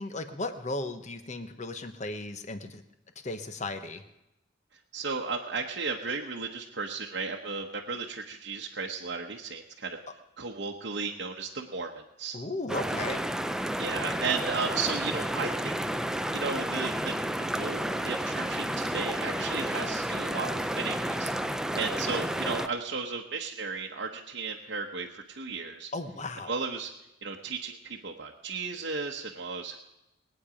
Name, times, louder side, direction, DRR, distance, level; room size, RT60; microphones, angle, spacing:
voice 1, 0.0-2.8 3.2-4.0 12.3-13.2 25.9-26.5, left 2 dB, 35° left, 8 dB, 1.1 m, -35 dB
voice 2, 4.9-10.0 10.4-12.4 13.8-15.9 16.3-17.1 17.4-25.9 26.5-26.9 27.2-29.8, right 4 dB, 60° right, 0 dB, 1.0 m, -35 dB
sound 1, 12.7-22.7, right 1 dB, 5° right, 0.4 m, -31 dB
22.0 x 8.9 x 5.0 m, 0.91 s
head